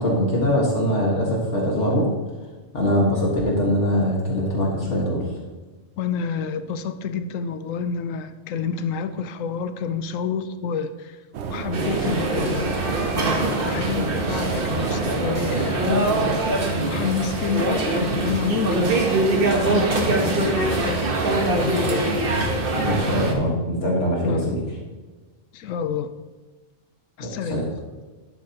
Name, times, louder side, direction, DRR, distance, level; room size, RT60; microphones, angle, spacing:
voice 1, 0.0-2.1 2.7-5.2 22.8-24.6 27.2-27.6, equal, 65° left, -2 dB, 2.1 m, -22 dB
voice 2, 6.0-11.2 11.5-12.7 13.2-16.4 16.9-19.0 19.5-21.0 21.4-22.1 24.2-24.5 25.5-26.1 27.2-27.6, left 6 dB, 90° left, 11 dB, 1.0 m, -28 dB
sound 1, 11.3-16.4, right 6 dB, 65° right, 0.9 m, -31 dB
sound 2, 11.7-23.3, right 2 dB, 45° right, 1.3 m, -23 dB
11.0 x 8.3 x 2.9 m, 1.2 s
omnidirectional pair, 1.3 m